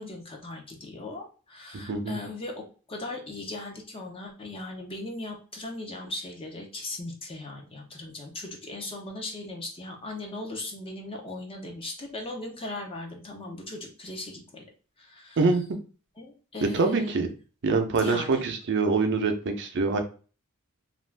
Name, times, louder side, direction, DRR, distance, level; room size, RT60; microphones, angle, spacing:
voice 1, 0.0-2.6 2.9-14.6 15.0-15.4 16.2-17.3 18.0-18.5, left 2 dB, 25° left, 2 dB, 0.6 m, -38 dB
voice 2, 1.7-2.2 15.4-15.6 16.7-17.3 17.6-20.0, right 4 dB, 55° right, 5 dB, 0.5 m, -25 dB
2.5 x 2.3 x 3.3 m, 0.37 s
head